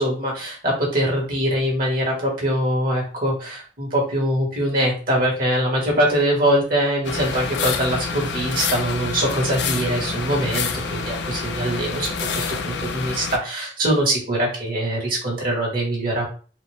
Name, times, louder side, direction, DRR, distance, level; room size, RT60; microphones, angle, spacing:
voice 1, 0.0-16.2, right 1 dB, 50° right, -2 dB, 1.6 m, -23 dB
sound 1, 7.0-13.4, left 5 dB, 65° left, 0.5 m, -27 dB
4.1 x 2.5 x 3.4 m, 0.40 s
head